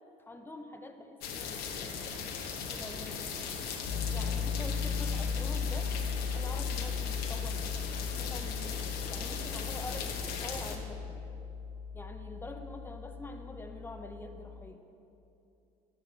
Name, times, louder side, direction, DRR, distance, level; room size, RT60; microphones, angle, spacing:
voice 1, 0.3-2.2 2.7-3.3 4.1-5.9 6.3-7.8 8.1-11.3 11.9-14.8, left 2 dB, 10° left, 5 dB, 0.8 m, -46 dB
sound 1, 1.2-10.8, left 6 dB, 65° left, 1.0 m, -39 dB
Piano, 3.8-14.7, left 6 dB, 50° left, 1.7 m, -37 dB
12.0 x 10.0 x 2.9 m, 2.8 s
supercardioid pair, 75°, 17 cm